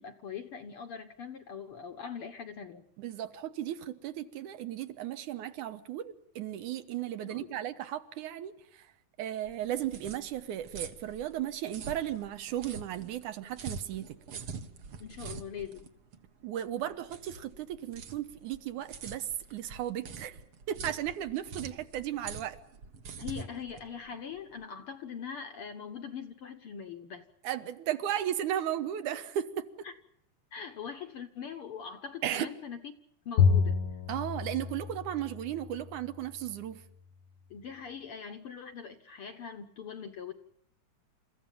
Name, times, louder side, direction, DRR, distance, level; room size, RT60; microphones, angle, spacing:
voice 1, 0.0-2.9 7.2-7.6 15.0-15.9 23.2-27.3 29.8-29.9 30.5-32.8 33.2-33.8 37.5-40.3, left 7 dB, 65° left, 1.5 m, -42 dB
voice 2, 3.0-8.9 9.2-14.2 16.4-20.4 20.7-22.6 27.4-29.9 32.2-32.5 34.1-36.8, right 11 dB, 75° right, 2.5 m, -35 dB
sound 1, 9.4-24.6, right 5 dB, 55° right, 1.9 m, -45 dB
Bowed string instrument, 33.4-35.9, left 6 dB, 80° left, 1.0 m, -28 dB
28.5 x 14.5 x 9.1 m
omnidirectional pair, 3.6 m